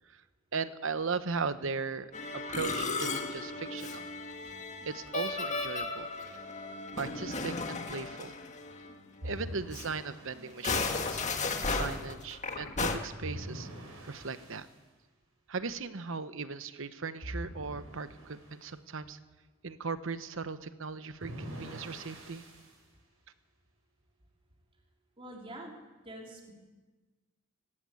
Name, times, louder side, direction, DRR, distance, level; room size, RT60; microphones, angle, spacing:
voice 1, 0.5-4.1 4.9-6.1 7.0-8.3 9.2-11.3 11.7-13.7 14.0-14.7 15.5-19.2 19.6-22.4, right 4 dB, 65° right, 12 dB, 1.0 m, -38 dB
Musical instrument, 2.1-9.0 9.3-9.4 9.7-9.9 10.5-13.0, left 3 dB, 35° left, 1.7 m, -35 dB
sound 1, 9.2-10.6 13.2-14.7 17.2-18.6 21.2-22.8, equal, 85° right, 6.1 m, -44 dB
voice 2, 25.2-25.8 26.0-26.5, right 1 dB, 25° right, 0 dB, 3.2 m, -45 dB
19.0 x 16.0 x 8.3 m, 1.3 s
head